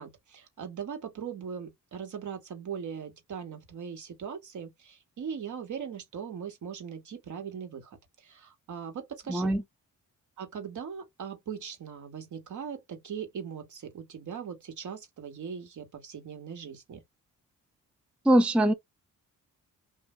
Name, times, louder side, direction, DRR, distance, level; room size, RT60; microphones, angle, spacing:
voice 1, 0.0-8.0 8.2-9.5 10.4-17.0, right 7 dB, 60° right, 1.4 m, -40 dB
voice 2, 9.3-9.6 18.2-18.7, right 1 dB, 5° right, 0.4 m, -22 dB
2.6 x 2.2 x 3.7 m
cardioid pair, 75°, 33 cm